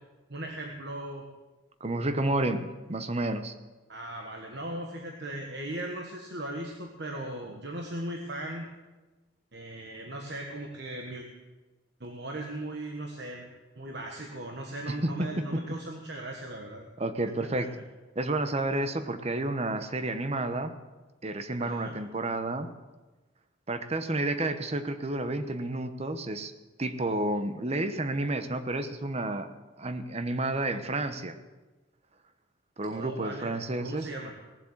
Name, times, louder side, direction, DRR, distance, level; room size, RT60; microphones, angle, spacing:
voice 1, 0.3-1.2 3.9-8.7 9.5-11.2 12.0-13.5 13.8-16.8 17.6-17.7 21.6-22.0 32.9-34.3, right 1 dB, 55° right, 1 dB, 1.4 m, -38 dB
voice 2, 1.8-3.5 15.0-15.4 17.0-17.7 18.2-20.7 21.2-22.7 23.7-26.5 26.8-29.5 29.8-31.3 32.8-34.1, right 2 dB, 30° right, 9 dB, 0.9 m, -30 dB
18.0 x 7.8 x 7.4 m, 1.2 s
head